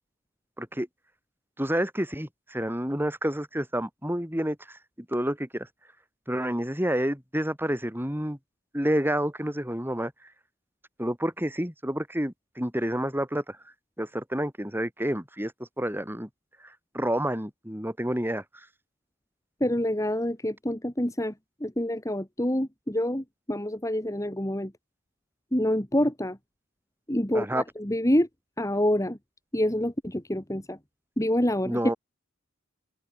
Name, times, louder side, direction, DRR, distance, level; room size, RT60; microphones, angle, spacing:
voice 1, 1.6-5.7 6.3-8.4 8.7-10.1 11.0-13.6 14.0-15.5 15.8-16.3 16.9-18.4 27.3-27.6 31.6-32.0, equal, 10° right, 7.9 m, -29 dB
voice 2, 19.6-21.3 21.6-24.7 25.5-26.4 27.1-28.3 28.6-29.2 29.5-30.8 31.2-31.8, left 1 dB, 15° left, 2.4 m, -27 dB
open air
head